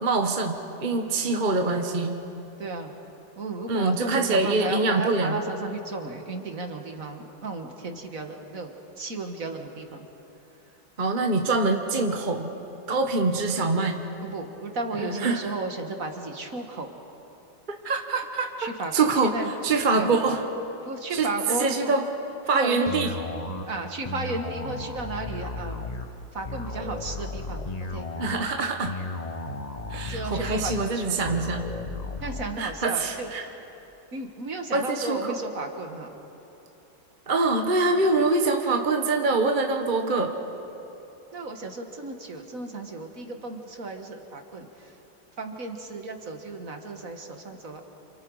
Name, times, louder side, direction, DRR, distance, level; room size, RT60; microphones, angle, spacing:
voice 1, 0.0-2.2 3.7-5.4 11.0-12.5 12.9-14.1 15.0-15.5 17.7-20.5 21.1-22.1 22.5-23.1 28.2-29.0 29.9-31.6 32.6-33.5 34.7-35.4 37.3-40.3, right 3 dB, 30° right, 4 dB, 1.2 m, -25 dB
voice 2, 2.6-2.9 3.4-10.1 14.2-16.9 18.6-19.5 19.9-20.1 20.8-21.9 22.5-22.9 23.7-25.9 26.3-28.3 30.0-31.4 32.2-33.5 34.1-36.1 41.3-44.7 45.4-47.8, right 3 dB, 45° right, 4 dB, 2.0 m, -34 dB
sound 1, 22.9-32.5, left 2 dB, 30° left, 0.9 m, -35 dB
28.5 x 28.0 x 4.8 m, 3.0 s
omnidirectional pair, 2.0 m